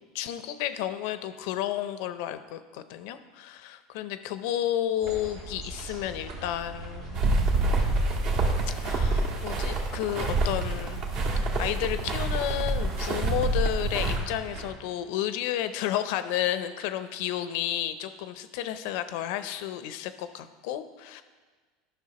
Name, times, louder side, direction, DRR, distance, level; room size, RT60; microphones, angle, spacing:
voice 1, 0.1-7.2 8.8-11.0 11.6-21.2, left 12 dB, 70° left, 11 dB, 0.5 m, -32 dB
sound 1, 5.0-14.7, right 2 dB, 80° right, 2.6 m, -41 dB
sound 2, 7.1-14.2, right 2 dB, 65° right, 1.5 m, -27 dB
12.0 x 6.0 x 2.9 m, 1.4 s
supercardioid pair, 120°, 0 cm